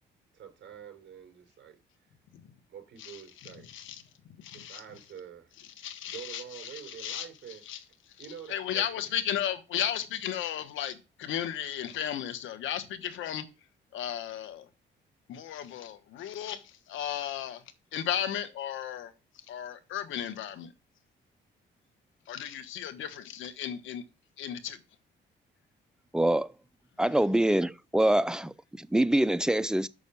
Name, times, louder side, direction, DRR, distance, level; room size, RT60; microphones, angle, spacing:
voice 1, 0.3-1.8 2.7-3.7 4.5-5.5 6.0-7.6 8.2-8.9, right 8 dB, 65° right, 4.0 m, -46 dB
voice 2, 3.0-4.0 4.4-4.8 5.8-7.3 7.7-7.8 8.5-13.4 13.9-14.7 15.3-17.6 17.9-19.1 19.5-20.7 22.3-24.0 24.4-24.8, left 10 dB, 80° left, 1.3 m, -35 dB
voice 3, 26.1-26.5 27.0-29.9, right 1 dB, 5° right, 0.5 m, -25 dB
6.4 x 6.3 x 7.1 m
cardioid pair, 90°, 20 cm